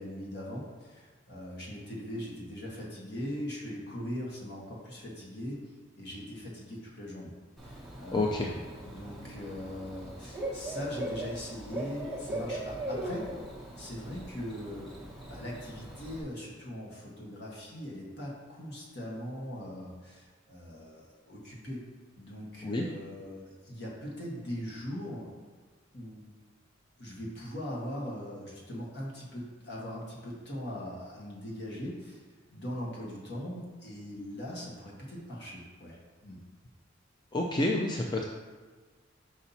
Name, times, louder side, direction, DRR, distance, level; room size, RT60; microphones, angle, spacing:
voice 1, 0.0-5.6 6.0-7.3 7.6-8.6 8.8-13.3 13.8-14.9 15.3-21.8 22.2-25.3 25.9-26.3 27.0-32.2 32.5-36.4, equal, 60° left, -3 dB, 1.5 m, -40 dB
Bird / Cricket, 7.6-16.2, right 1 dB, ahead, 1.1 m, -40 dB
voice 2, 8.1-8.5 22.6-22.9 37.3-38.2, left 2 dB, 25° left, 0 dB, 0.4 m, -28 dB
5.7 x 4.9 x 4.1 m, 1.4 s
head